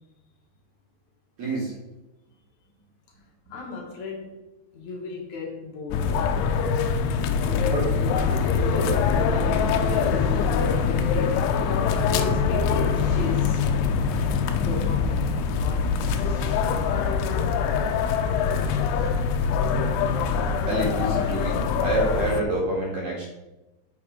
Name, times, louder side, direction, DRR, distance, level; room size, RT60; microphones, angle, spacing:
voice 1, 1.4-1.7 7.7-7.8 20.7-23.2, right 1 dB, 45° right, -5 dB, 3.2 m, -27 dB
voice 2, 3.5-4.4 4.7-6.8 7.3-11.6 12.1-13.8 14.6-18.2 18.9-19.3, left 3 dB, 65° left, -1 dB, 2.0 m, -37 dB
sound 1, 5.9-22.4, left 6 dB, 85° left, 2.3 m, -23 dB
8.6 x 7.1 x 5.0 m, 1.0 s
omnidirectional pair, 5.6 m